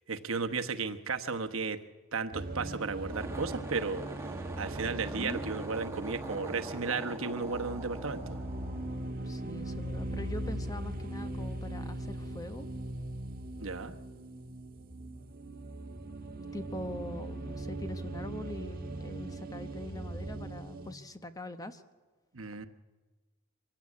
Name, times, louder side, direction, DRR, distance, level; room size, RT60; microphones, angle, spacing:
voice 1, 0.1-1.8 2.1-4.1 4.6-8.4 13.6-13.9 22.3-22.7, right 4 dB, 75° right, 7 dB, 1.1 m, -34 dB
sound 1, 2.3-20.9, right 1 dB, 45° right, 1.5 m, -40 dB
sound 2, 3.0-9.5, right 1 dB, 15° right, 1.5 m, -43 dB
voice 2, 5.1-5.4 9.2-12.7 16.5-21.8, left 1 dB, 20° left, 9 dB, 1.0 m, -42 dB
23.5 x 16.0 x 8.4 m, 1.3 s
head